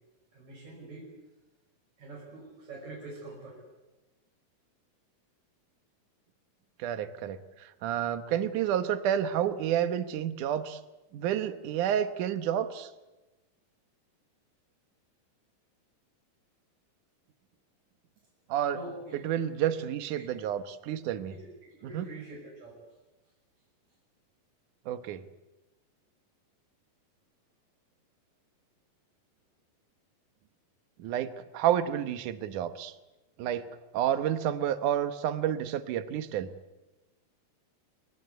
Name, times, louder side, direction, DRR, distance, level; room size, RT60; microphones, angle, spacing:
voice 1, 0.3-1.1 2.0-3.6 18.7-19.3 19.6-19.7 20.1-20.3 21.3-22.8, right 2 dB, 55° right, -2 dB, 6.9 m, -45 dB
voice 2, 6.8-10.8 11.1-12.9 18.5-18.8 19.2-21.3 21.8-22.1 24.9-25.3 31.0-32.9 33.4-33.7 33.9-36.5, right 10 dB, 70° right, 10 dB, 2.6 m, -30 dB
26.5 x 25.5 x 8.2 m, 1.1 s
omnidirectional pair, 3.9 m